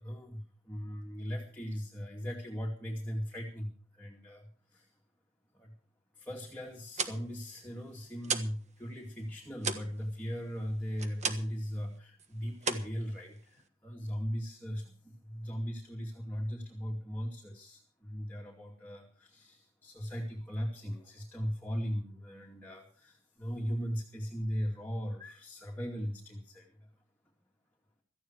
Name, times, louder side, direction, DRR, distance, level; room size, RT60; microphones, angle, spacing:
voice 1, 0.0-4.9 5.5-5.7 6.2-26.9, equal, 10° left, -2 dB, 2.5 m, -38 dB
sound 1, 6.7-8.6 8.9-11.6 11.9-12.3 12.6-13.7, right 5 dB, 35° right, 1.4 m, -36 dB
17.0 x 14.5 x 4.6 m, 0.43 s
head